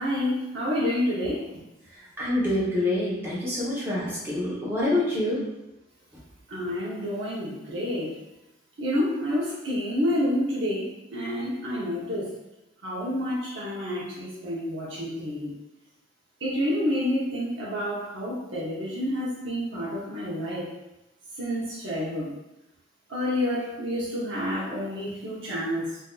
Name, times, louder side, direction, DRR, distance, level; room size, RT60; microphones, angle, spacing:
voice 1, 0.0-1.6 6.5-8.2 8.8-12.3 12.8-15.5 16.4-20.7 21.3-22.3 23.1-26.0, left 1 dB, 70° right, -7 dB, 0.7 m, -29 dB
voice 2, 2.2-5.4, left 1 dB, 10° right, -8 dB, 0.7 m, -26 dB
3.7 x 2.5 x 2.3 m, 0.95 s
head